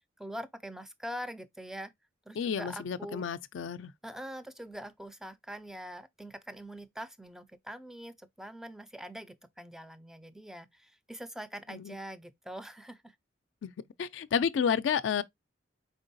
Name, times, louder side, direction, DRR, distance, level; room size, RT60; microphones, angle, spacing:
voice 1, 0.2-1.9 2.3-3.3 4.0-13.2, equal, ahead, 0.4 m, -43 dB
voice 2, 2.4-3.9 11.7-12.0 13.6-13.7 14.0-15.2, left 7 dB, 75° left, 0.4 m, -30 dB
4.4 x 3.7 x 2.6 m
head